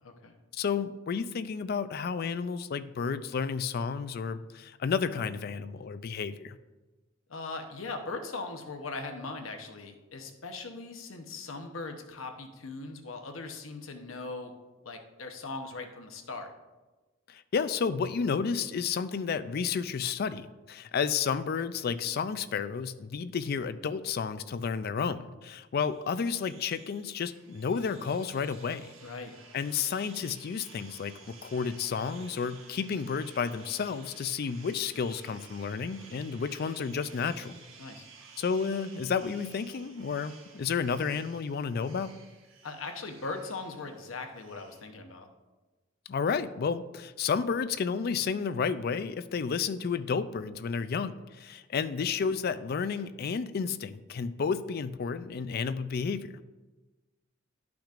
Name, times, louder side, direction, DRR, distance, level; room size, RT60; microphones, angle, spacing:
voice 1, 0.0-0.3 7.3-14.5 14.8-16.5 29.0-29.3 37.8-38.1 42.6-45.3, left 3 dB, 90° left, 5 dB, 0.9 m, -40 dB
voice 2, 0.5-6.6 17.3-28.9 29.5-37.6 38.4-42.1 46.1-56.4, left 6 dB, 50° left, 13 dB, 0.4 m, -31 dB
sound 1, 25.9-44.8, right 5 dB, 80° right, 1.1 m, -54 dB
11.5 x 5.9 x 2.5 m, 1.2 s
head